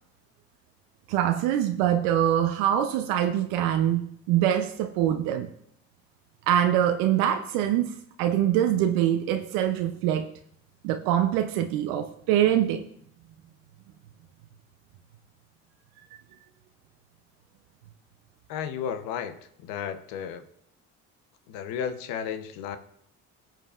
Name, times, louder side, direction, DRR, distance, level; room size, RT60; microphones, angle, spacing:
voice 1, 1.1-5.5 6.5-10.3 10.8-12.8, right 11 dB, 85° right, 0.6 m, -24 dB
voice 2, 18.5-19.3 19.6-20.4 21.5-22.8, left 8 dB, 80° left, 0.8 m, -33 dB
17.5 x 7.4 x 2.4 m
supercardioid pair, 70°, 34 cm